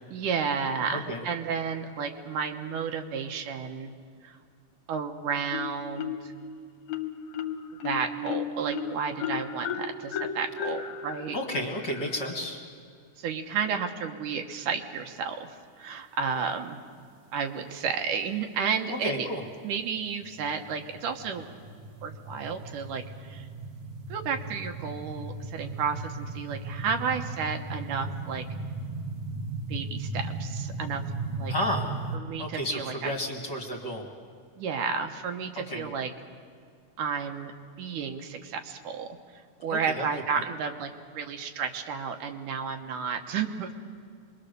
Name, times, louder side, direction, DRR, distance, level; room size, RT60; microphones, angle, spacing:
voice 1, 0.1-3.9 4.2-4.4 4.9-6.3 7.8-11.4 13.2-15.5 15.8-16.8 17.3-19.3 19.6-21.5 22.0-23.5 24.1-28.4 29.7-31.0 31.4-31.5 32.1-33.1 34.6-36.1 37.0-37.5 37.8-39.1 39.6-43.7, right 6 dB, 80° right, 5 dB, 2.7 m, -32 dB
voice 2, 0.9-1.2 11.3-12.6 18.9-19.4 31.5-31.9 32.4-34.1 35.7-35.9 39.7-40.0 40.3-40.4, equal, 40° left, 0 dB, 2.1 m, -32 dB
Marimba xylophone, 5.5-6.4 6.9-12.4, left 6 dB, 65° left, 2.1 m, -35 dB
sound 1, 20.2-32.2, right 3 dB, 55° right, 1.9 m, -36 dB
26.0 x 22.0 x 6.7 m, 2.2 s
omnidirectional pair, 3.7 m